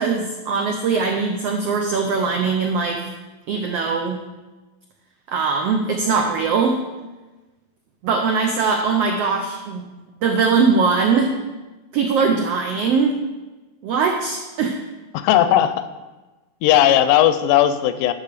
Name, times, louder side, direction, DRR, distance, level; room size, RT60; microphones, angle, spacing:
voice 1, 0.0-3.0 3.5-4.2 5.3-6.8 8.0-9.9 10.2-11.3 11.9-13.2 13.8-14.8, right 5 dB, 85° right, 3 dB, 1.3 m, -21 dB
voice 2, 15.1-15.8 16.6-18.1, left 11 dB, 80° left, 11 dB, 2.0 m, -16 dB
12.0 x 3.9 x 6.6 m, 1.2 s
omnidirectional pair, 3.8 m